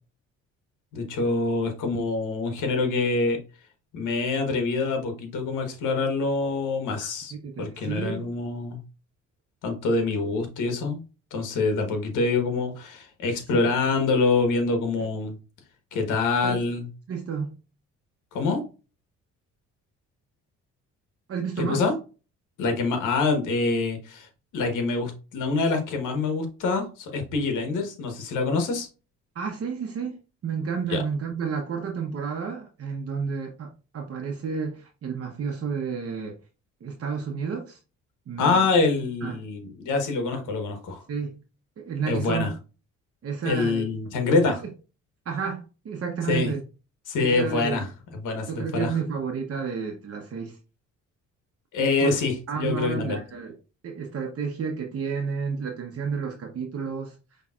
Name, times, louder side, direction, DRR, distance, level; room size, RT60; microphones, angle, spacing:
voice 1, 0.9-3.4 3.9-7.3 7.6-8.8 9.6-11.0 11.3-15.3 15.9-16.9 18.3-18.6 21.6-21.9 22.6-24.3 24.5-28.9 30.9-31.0 38.4-41.0 42.1-42.5 43.4-44.6 46.3-46.5 47.1-47.9 48.2-49.0 51.7-53.2, left 3 dB, 85° left, 5 dB, 1.3 m, -25 dB
voice 2, 7.3-8.3 13.5-13.6 15.0-15.1 16.4-16.6 17.1-17.6 21.3-21.8 29.3-36.4 36.8-37.8 38.3-38.7 39.2-39.4 40.3-40.4 41.1-41.4 41.8-42.5 43.2-43.9 44.3-44.6 45.2-46.6 47.2-47.9 48.5-50.6 52.0-52.1 52.5-53.6 53.8-57.1, right 6 dB, 50° right, 2 dB, 1.0 m, -31 dB
5.7 x 3.2 x 2.4 m, 0.32 s
cardioid pair, 90°, 30 cm